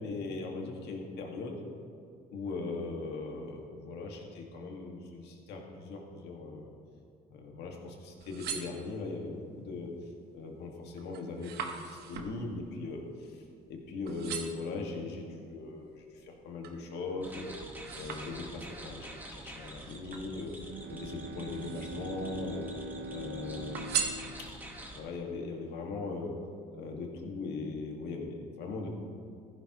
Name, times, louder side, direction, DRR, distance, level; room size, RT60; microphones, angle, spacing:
voice 1, 0.0-1.7 2.3-6.7 7.3-9.9 10.3-13.4 13.7-17.5 17.9-20.5 20.9-22.7 23.1-24.0 24.4-24.5 24.9-26.3 26.7-28.9, left 3 dB, 75° left, 1 dB, 2.0 m, -39 dB
sound 1, 8.0-9.3 9.9-10.3 10.7-13.8 14.1-14.8 15.4-16.9 17.3-18.8 19.7-20.9 21.4-22.2 22.5-23.3 23.7-24.8 25.3-25.4, right 7 dB, 70° right, 1.2 m, -40 dB
sound 2, 17.2-25.0, right 1 dB, 10° right, 1.6 m, -47 dB
Bowed string instrument, 20.6-25.7, right 1 dB, 90° right, 0.8 m, -44 dB
15.0 x 11.5 x 3.1 m, 2.3 s
cardioid pair, 110°, 17 cm